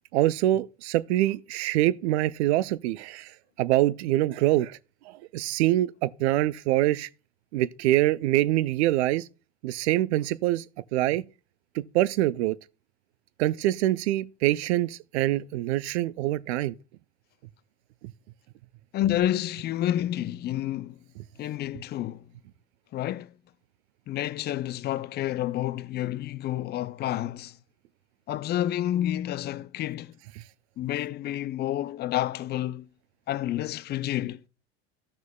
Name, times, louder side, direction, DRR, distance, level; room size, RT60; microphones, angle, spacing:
voice 1, 0.1-3.3 3.6-4.8 5.1-7.1 7.5-9.2 9.6-10.6 10.9-11.3 11.7-12.6 13.4-16.7, right 15 dB, 75° right, 0.5 m, -25 dB
voice 2, 18.9-21.0 21.4-22.3 22.9-23.3 24.1-27.6 28.3-30.1 30.8-32.9 33.3-34.5, left 13 dB, 30° left, 0.4 m, -29 dB
14.5 x 6.2 x 2.2 m
hypercardioid pair, 80°, 34 cm